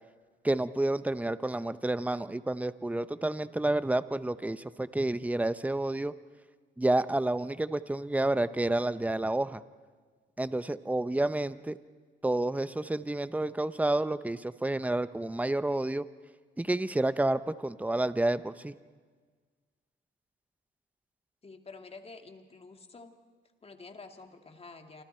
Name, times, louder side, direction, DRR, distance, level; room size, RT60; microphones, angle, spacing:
voice 1, 0.4-6.1 6.8-9.6 10.4-11.8 12.2-16.1 16.6-18.7, right 2 dB, 5° right, 14 dB, 0.8 m, -29 dB
voice 2, 21.4-23.1 23.6-25.0, left 3 dB, 30° left, 5 dB, 2.3 m, -49 dB
28.5 x 25.0 x 4.5 m, 1.5 s
cardioid pair, 90°, 20 cm